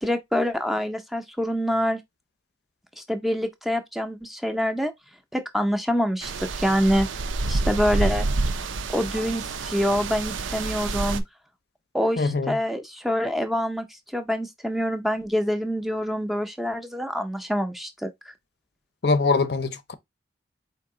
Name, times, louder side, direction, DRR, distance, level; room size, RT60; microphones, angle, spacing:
voice 1, 0.0-2.0 3.0-4.9 5.3-7.1 7.5-8.3 8.9-11.2 11.9-13.9 14.1-18.1, equal, ahead, 0.5 m, -26 dB
sound 1, 6.2-11.2, right 3 dB, 85° right, 0.5 m, -28 dB
voice 2, 12.2-12.6 19.0-19.9, left 4 dB, 55° left, 0.6 m, -23 dB
4.5 x 2.8 x 3.7 m
head